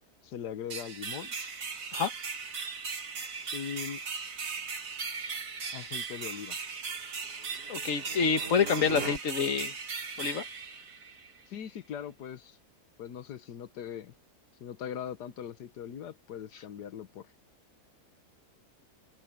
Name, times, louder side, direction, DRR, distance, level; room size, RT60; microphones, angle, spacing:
voice 1, 0.2-1.3 3.5-4.0 5.7-6.6 11.5-12.6 13.0-14.1 14.6-17.3, left 9 dB, 85° left, 1.6 m, -40 dB
sound 1, 0.7-11.4, right 5 dB, 55° right, 2.2 m, -38 dB
sound 2, 7.2-9.2, right 3 dB, 85° right, 4.8 m, -41 dB
voice 2, 7.7-9.8 10.2-10.4, left 6 dB, 55° left, 1.6 m, -27 dB
open air
omnidirectional pair, 1.7 m